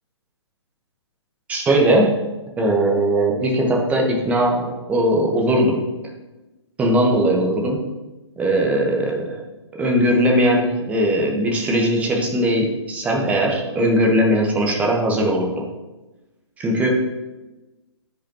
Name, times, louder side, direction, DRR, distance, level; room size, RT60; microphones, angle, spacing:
voice 1, 1.5-2.2 2.6-5.8 6.8-7.8 8.4-9.4 9.7-15.7 16.6-16.9, right 1 dB, 10° right, 0 dB, 1.2 m, -19 dB
14.5 x 5.5 x 3.0 m, 1.1 s
figure-of-eight pair, 130°, 15 cm